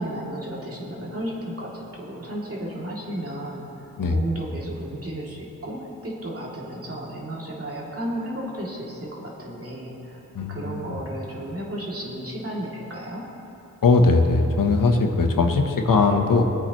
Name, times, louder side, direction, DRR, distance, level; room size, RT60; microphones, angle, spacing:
voice 1, 0.0-10.2 10.5-13.3, right 1 dB, 45° right, -4 dB, 2.9 m, -33 dB
voice 2, 10.3-11.0 13.8-16.4, left 3 dB, 75° left, 4 dB, 1.2 m, -20 dB
21.5 x 8.8 x 3.1 m, 2.8 s
cardioid pair, 65°, 33 cm